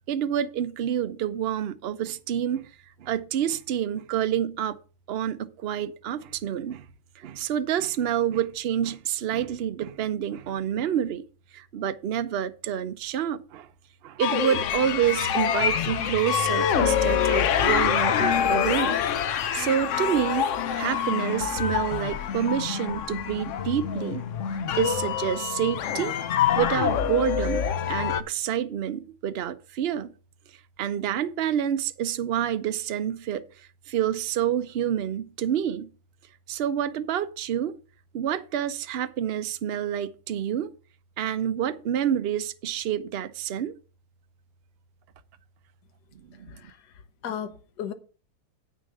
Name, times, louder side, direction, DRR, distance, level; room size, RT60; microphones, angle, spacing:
voice 1, 0.1-2.7 3.0-4.8 5.1-6.8 7.2-11.2 11.5-13.7 14.0-19.0 19.5-20.5 20.8-24.2 24.7-26.1 26.5-30.1 30.8-35.9 36.5-37.7 38.1-40.7 41.2-43.7 46.4-46.5, right 10 dB, 55° right, 0.7 m, -28 dB
sound 1, 14.2-28.2, left 8 dB, 60° left, 0.9 m, -26 dB
voice 2, 46.5-46.9 47.2-47.9, left 9 dB, 85° left, 1.5 m, -35 dB
8.5 x 6.5 x 5.4 m
omnidirectional pair, 1.7 m